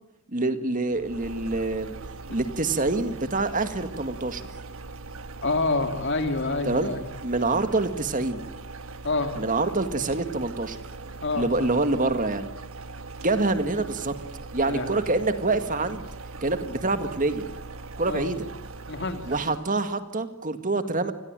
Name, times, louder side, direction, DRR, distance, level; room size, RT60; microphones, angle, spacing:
voice 1, 0.3-1.9 2.3-4.4 6.7-6.9 7.2-8.4 9.4-10.8 11.3-12.5 13.2-14.1 14.5-16.1 16.4-17.5 18.0-18.5 19.3-21.1, right 2 dB, 35° right, 9 dB, 2.0 m, -26 dB
sound 1, 0.9-19.8, right 3 dB, 65° right, 1.6 m, -40 dB
voice 2, 5.4-7.0 9.0-9.3 11.2-11.7 14.6-15.0 18.0-18.3 18.9-19.3, left 3 dB, 55° left, 7 dB, 3.2 m, -27 dB
28.5 x 21.0 x 9.0 m, 0.88 s
head